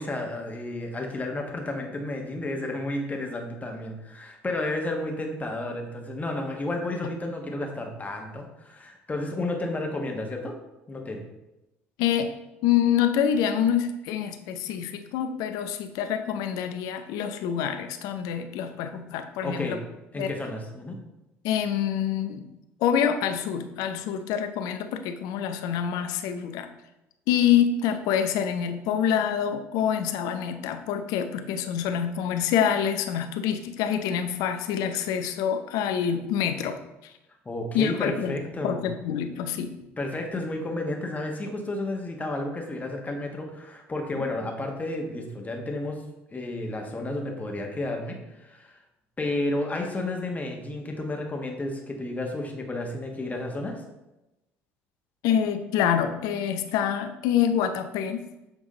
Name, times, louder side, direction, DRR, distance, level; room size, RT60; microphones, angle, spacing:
voice 1, 0.0-10.5 10.9-11.2 19.4-19.8 20.1-21.0 37.4-38.8 40.0-46.0 46.3-48.7 49.2-53.8, left 2 dB, 20° left, 2 dB, 1.3 m, -32 dB
voice 2, 12.0-12.4 12.6-19.8 20.2-20.3 21.4-22.5 22.8-26.7 27.3-37.1 37.7-38.4 38.6-39.8 44.2-44.3 55.2-58.3, left 9 dB, 65° left, 8 dB, 0.6 m, -26 dB
7.3 x 3.5 x 3.9 m, 0.96 s
hypercardioid pair, 60°, 7 cm